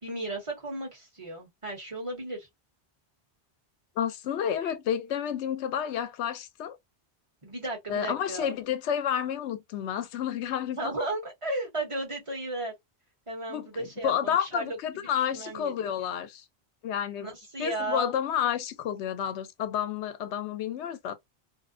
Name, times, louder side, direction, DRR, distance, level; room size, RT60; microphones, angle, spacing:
voice 1, 0.0-2.5 4.6-4.7 7.4-8.6 10.8-12.7 13.3-14.8 15.1-15.7 17.2-18.1, right 2 dB, 30° right, 1.0 m, -34 dB
voice 2, 4.0-6.8 7.9-10.9 13.5-13.7 14.0-16.4 16.8-17.3 17.6-21.1, left 9 dB, 85° left, 0.9 m, -30 dB
2.6 x 2.0 x 2.5 m
omnidirectional pair, 1.1 m